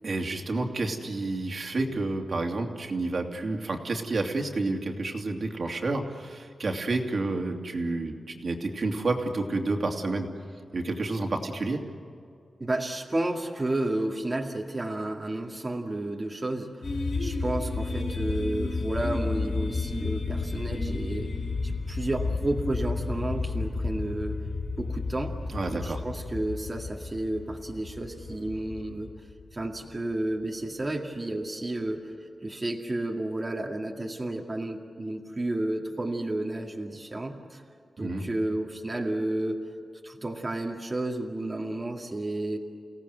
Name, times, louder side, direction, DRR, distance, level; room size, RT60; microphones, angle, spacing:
voice 1, 0.0-10.3 10.7-11.8 25.5-26.0 38.0-38.2, right 2 dB, 50° right, 2 dB, 2.9 m, -30 dB
voice 2, 12.6-16.9 17.2-21.3 21.6-24.4 24.8-25.4 25.7-29.1 29.5-32.1 32.4-37.6 38.0-39.7 40.0-42.6, right 1 dB, 25° right, -1 dB, 2.2 m, -31 dB
sound 1, 16.8-29.7, left 3 dB, 85° left, 4.3 m, -32 dB
30.0 x 17.5 x 8.0 m, 2.4 s
wide cardioid pair, 115°, 0 cm